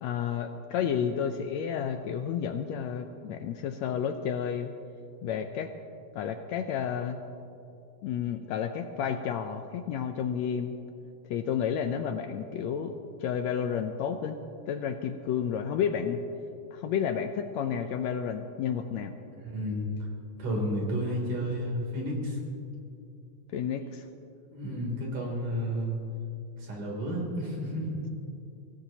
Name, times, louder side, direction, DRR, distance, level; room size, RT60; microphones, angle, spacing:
voice 1, 0.0-4.7 5.2-5.7 6.1-7.2 8.0-10.7 11.3-12.9 13.2-14.4 14.7-16.2 16.7-19.1 23.5-24.0, left 8 dB, 75° left, 7 dB, 1.7 m, -31 dB
voice 2, 19.4-19.8 20.4-22.4 24.5-26.0 26.6-28.0, equal, 70° right, -2 dB, 4.8 m, -31 dB
24.5 x 16.5 x 2.9 m, 2.8 s
omnidirectional pair, 3.6 m